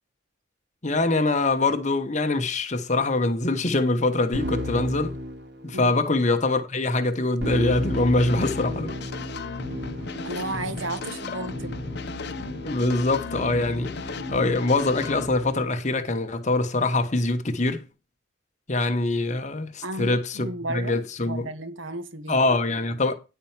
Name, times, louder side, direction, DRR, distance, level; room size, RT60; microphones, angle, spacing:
voice 1, 0.8-5.2 5.6-9.0 12.6-17.8 18.7-21.5 22.3-23.1, left 2 dB, 40° left, 1.1 m, -24 dB
Keyboard (musical), 4.3-6.0 7.4-15.8, left 1 dB, 60° right, 2.6 m, -35 dB
sound 1, 7.7-15.3, left 3 dB, 60° left, 0.8 m, -36 dB
voice 2, 10.2-11.8 19.8-22.4, right 1 dB, 85° right, 1.5 m, -33 dB
10.0 x 4.5 x 7.2 m
head